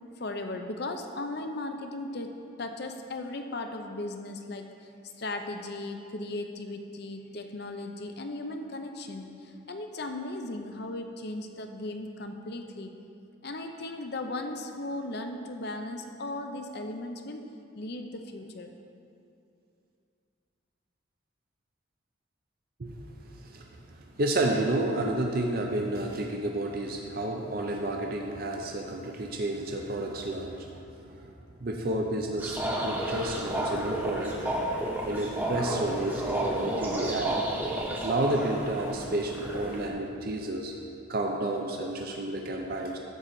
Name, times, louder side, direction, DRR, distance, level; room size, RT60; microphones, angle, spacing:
voice 1, 0.2-4.9 5.2-12.9 13.4-17.4 17.7-18.7, left 2 dB, 55° left, 6 dB, 0.6 m, -37 dB
voice 2, 23.4-31.3 31.6-34.4 35.0-37.4 37.9-40.7 41.1-43.0, right 1 dB, 45° right, 1 dB, 0.6 m, -31 dB
sound 1, 32.4-39.9, right 1 dB, 10° right, 0.9 m, -32 dB
11.0 x 3.9 x 7.4 m, 2.6 s
head